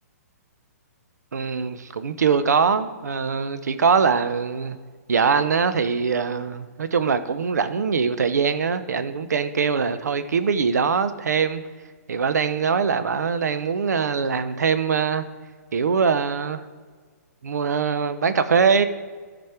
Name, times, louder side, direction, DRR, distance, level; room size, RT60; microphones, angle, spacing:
voice 1, 1.3-4.8 5.1-11.6 12.1-15.3 15.7-16.6 17.4-18.8, right 6 dB, 85° right, 12 dB, 0.7 m, -22 dB
13.0 x 5.2 x 4.4 m, 1.5 s
hypercardioid pair, 150°, 9 cm